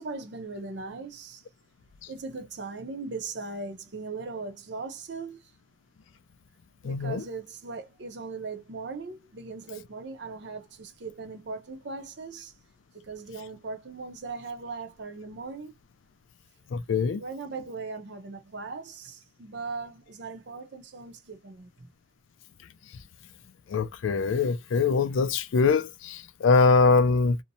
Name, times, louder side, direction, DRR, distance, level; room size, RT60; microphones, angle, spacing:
voice 1, 0.0-1.4 2.1-5.5 6.8-12.5 12.9-15.7 17.2-21.9, right 4 dB, 60° right, 0.7 m, -39 dB
voice 2, 6.8-7.2 16.7-17.2 23.7-27.4, left 4 dB, 75° left, 0.4 m, -23 dB
2.7 x 2.1 x 2.6 m
head